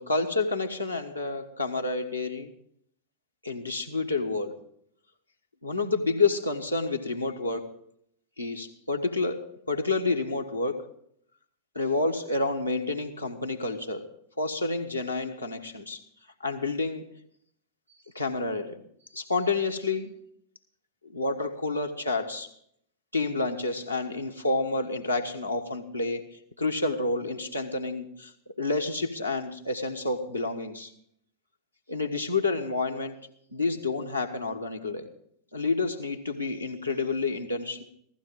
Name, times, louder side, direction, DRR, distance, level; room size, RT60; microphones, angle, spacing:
voice 1, 0.0-2.5 3.4-4.6 5.6-7.7 8.4-10.9 11.7-14.0 14.4-16.0 16.4-17.1 18.1-18.8 19.1-20.1 21.0-22.5 23.1-26.2 26.6-30.9 31.9-33.2 33.5-35.1 35.5-37.8, left 3 dB, 85° left, 2 dB, 1.4 m, -29 dB
15.5 x 15.5 x 3.7 m, 0.67 s
figure-of-eight pair, 90°, 0 cm